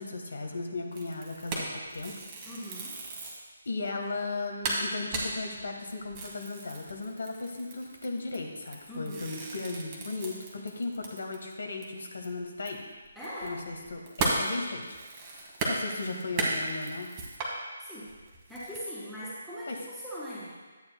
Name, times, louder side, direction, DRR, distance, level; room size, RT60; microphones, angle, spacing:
voice 1, 0.0-2.2 3.6-12.8 13.4-15.0 15.3-17.1 19.7-19.8, left 3 dB, 80° left, 2 dB, 1.5 m, -36 dB
sound 1, 0.9-3.5 4.0-4.1 4.3-4.4 4.6-11.5 11.8-11.9 12.2-17.5 18.1-18.8, right 2 dB, 20° right, 1.2 m, -35 dB
voice 2, 2.5-3.0 8.9-9.3 13.1-13.5 17.8-18.1 18.5-20.5, equal, ahead, -11 dB, 2.5 m, -40 dB
11.5 x 8.8 x 2.2 m, 1.4 s
hypercardioid pair, 170°, 0 cm